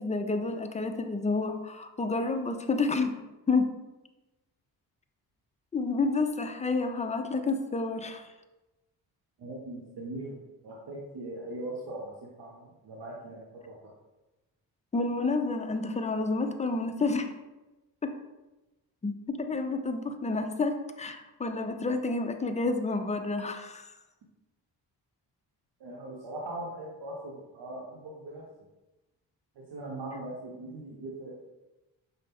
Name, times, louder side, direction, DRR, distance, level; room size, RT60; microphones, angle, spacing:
voice 1, 0.0-3.2 3.5-3.7 5.7-8.3 14.9-17.3 18.0-18.1 19.0-23.9, left 3 dB, 15° left, 7 dB, 0.3 m, -29 dB
voice 2, 9.4-13.9 25.8-28.4 29.6-31.4, right 2 dB, 60° right, -3 dB, 0.8 m, -40 dB
5.2 x 2.0 x 3.5 m, 1.1 s
supercardioid pair, 50°, 47 cm